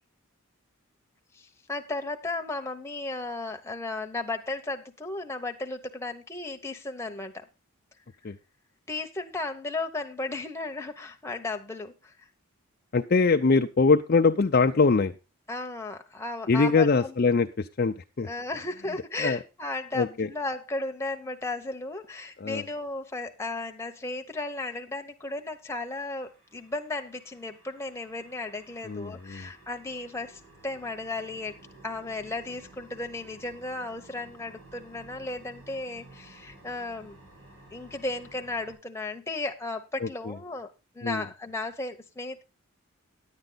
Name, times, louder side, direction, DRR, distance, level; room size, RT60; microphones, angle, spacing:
voice 1, 1.3-7.5 8.9-12.1 15.5-17.1 18.2-31.6 31.8-37.2 37.7-42.4, left 2 dB, 10° left, 4 dB, 1.0 m, -35 dB
voice 2, 12.9-15.1 16.5-18.3 19.2-19.4 19.9-20.3 22.4-22.6 28.8-29.5 40.0-40.3 41.0-41.2, left 4 dB, 45° left, 5 dB, 0.5 m, -23 dB
sound 1, 25.8-38.7, right 2 dB, 85° right, 5.7 m, -53 dB
10.5 x 9.0 x 3.9 m, 0.28 s
head